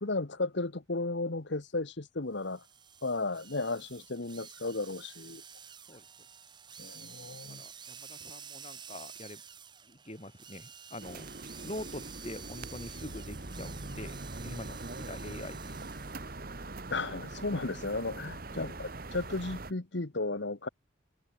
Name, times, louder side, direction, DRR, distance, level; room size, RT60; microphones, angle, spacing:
voice 1, 0.0-2.6 3.0-5.4 6.8-7.6 16.9-20.7, left 3 dB, 60° left, 1.2 m, -34 dB
sound 1, 2.4-16.3, right 7 dB, 20° right, 1.5 m, -50 dB
voice 2, 7.5-9.4 9.9-11.3 11.6-15.9 18.5-18.7, left 1 dB, 30° left, 5.2 m, -44 dB
sound 2, 11.0-19.7, right 2 dB, 45° right, 1.4 m, -42 dB
head